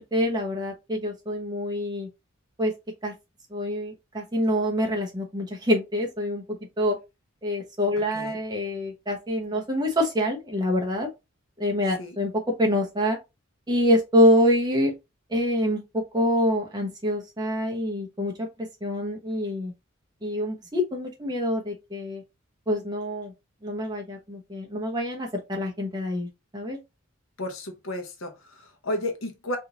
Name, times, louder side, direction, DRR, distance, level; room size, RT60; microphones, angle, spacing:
voice 1, 0.1-2.1 2.6-2.7 3.0-3.1 3.5-6.4 6.8-7.0 7.4-11.1 11.6-12.3 12.6-13.2 13.7-14.9 15.3-15.8 16.1-18.5 18.8-19.7 20.2-22.2 22.7-23.3 23.6-26.3 26.5-26.8, equal, 20° right, 0.9 m, -25 dB
voice 2, 27.4-29.6, left 1 dB, 80° left, 0.9 m, -33 dB
3.5 x 2.6 x 2.8 m
head